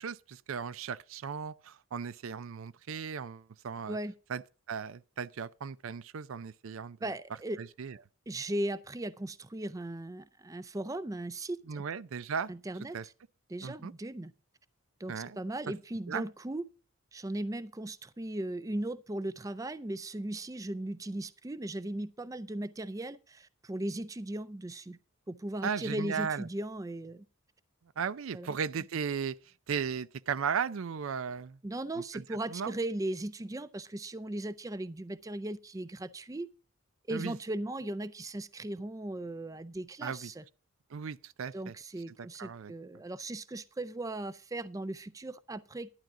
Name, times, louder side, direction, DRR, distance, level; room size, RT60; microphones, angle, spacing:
voice 1, 0.0-4.0 4.3-4.4 4.7-7.1 7.6-8.0 11.7-12.5 12.9-13.1 13.6-13.9 15.1-15.4 16.1-16.3 25.6-26.5 28.0-29.4 29.7-31.6 32.0-32.2 32.5-32.7 37.1-37.4 40.0-40.3 40.9-41.7 42.4-42.7, right 6 dB, 80° right, 0.5 m, -36 dB
voice 2, 7.0-7.6 8.3-11.8 12.5-13.0 13.5-14.3 15.0-16.6 17.1-25.0 25.3-27.2 28.3-28.5 31.6-36.5 37.1-40.4 41.5-45.9, right 1 dB, 15° right, 0.4 m, -37 dB
11.5 x 10.5 x 3.7 m
head